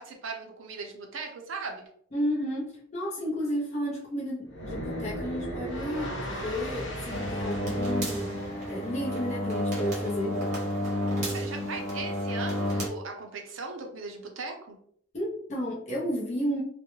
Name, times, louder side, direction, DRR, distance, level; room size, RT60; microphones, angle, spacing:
voice 1, 0.0-1.8 11.3-14.8, right 4 dB, 70° right, 3 dB, 0.5 m, -38 dB
voice 2, 2.1-10.4 15.1-16.6, equal, 35° left, -5 dB, 0.5 m, -32 dB
sound 1, 4.5-9.6, equal, 65° left, 1.0 m, -37 dB
sound 2, 7.1-12.9, left 1 dB, 35° right, 0.7 m, -31 dB
2.3 x 2.1 x 3.0 m, 0.63 s
head